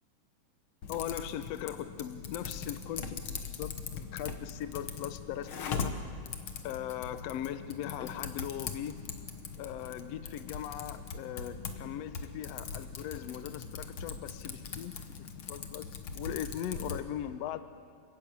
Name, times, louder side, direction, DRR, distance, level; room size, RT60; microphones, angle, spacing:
Typing, 0.8-17.1, left 5 dB, 55° left, 1.7 m, -41 dB
voice 1, 0.9-5.9 6.6-8.9 9.5-14.9 15.5-17.6, left 11 dB, 70° left, 11 dB, 1.7 m, -39 dB
29.5 x 14.0 x 8.6 m, 2.2 s
omnidirectional pair, 3.6 m